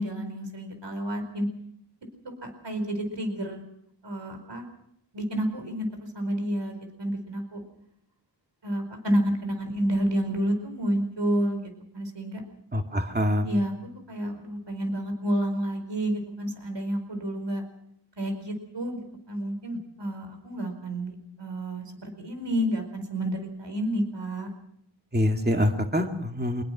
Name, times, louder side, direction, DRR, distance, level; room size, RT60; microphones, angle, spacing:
voice 1, 0.0-1.5 2.4-3.6 4.0-4.6 5.1-7.6 8.6-12.4 13.4-13.7 14.1-17.6 18.2-19.0 19.3-24.5, equal, 75° right, 6 dB, 4.8 m, -30 dB
voice 2, 12.7-13.6 25.1-26.6, left 1 dB, 20° right, 4 dB, 2.2 m, -25 dB
24.5 x 21.0 x 6.0 m, 0.74 s
wide cardioid pair, 75°, 44 cm